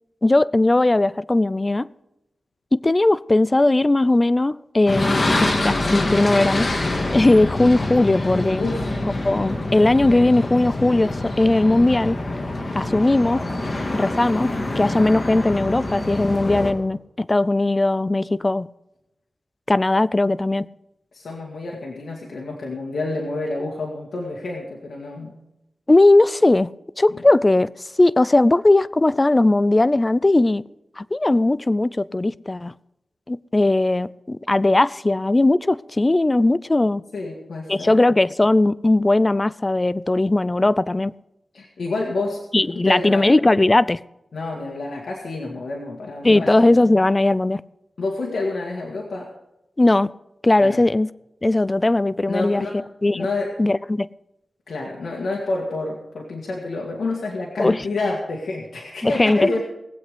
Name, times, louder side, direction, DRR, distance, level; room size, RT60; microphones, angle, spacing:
voice 1, 0.2-1.9 2.7-6.7 7.1-8.7 9.2-12.2 12.7-13.4 13.9-14.5 14.8-18.7 19.7-20.7 25.9-26.7 27.0-27.7 28.0-30.6 31.0-32.7 33.3-37.0 37.7-41.1 42.5-44.0 46.2-47.6 49.8-50.1 50.4-51.1 51.4-52.6 53.0-53.3 53.6-54.1 57.6-57.8 59.0-59.6, left 2 dB, 30° left, 0.4 m, -18 dB
sound 1, 4.9-16.7, left 2 dB, 45° left, 2.1 m, -25 dB
voice 2, 8.6-8.9 21.1-25.4 27.1-27.2 37.1-38.0 41.5-42.4 42.7-43.3 44.3-46.5 48.0-49.3 50.6-50.8 52.3-52.9 53.1-53.6 54.7-59.6, left 2 dB, 85° left, 2.0 m, -28 dB
19.5 x 8.1 x 5.2 m
cardioid pair, 60°, 0 cm